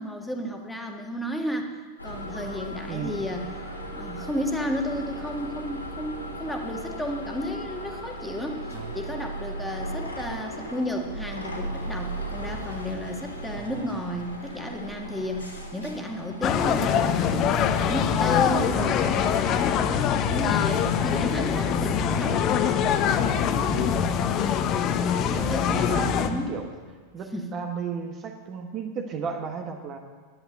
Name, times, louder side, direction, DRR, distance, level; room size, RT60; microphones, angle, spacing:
voice 1, 0.0-1.7 2.0-3.5 3.9-19.9 20.3-22.4 25.1-26.6 27.3-27.5, left 1 dB, 5° left, 1 dB, 1.8 m, -32 dB
sound 1, 2.0-21.4, right 1 dB, 85° left, 2.7 m, -37 dB
voice 2, 2.9-3.2 8.7-9.0 13.5-14.0 23.6-24.0 25.3-26.7 27.1-30.0, right 6 dB, 30° right, 4 dB, 1.3 m, -34 dB
sound 2, 16.4-26.3, left 8 dB, 35° left, 1.0 m, -24 dB
11.5 x 10.5 x 8.1 m, 1.5 s
figure-of-eight pair, 90°, 0 cm